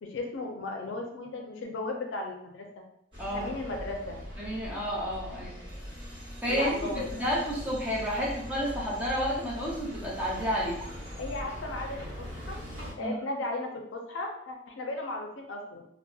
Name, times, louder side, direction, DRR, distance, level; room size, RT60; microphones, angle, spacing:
voice 1, 0.0-2.7 3.3-4.2 6.5-7.2 8.2-8.3 11.2-12.6 13.0-15.8, left 2 dB, 75° left, 2 dB, 0.4 m, -36 dB
sound 1, 3.1-12.9, equal, 25° right, 1.1 m, -41 dB
voice 2, 3.2-3.5 4.4-5.6 6.4-10.7 13.0-13.2, equal, 5° right, -5 dB, 0.6 m, -31 dB
2.7 x 2.1 x 2.3 m, 0.75 s
head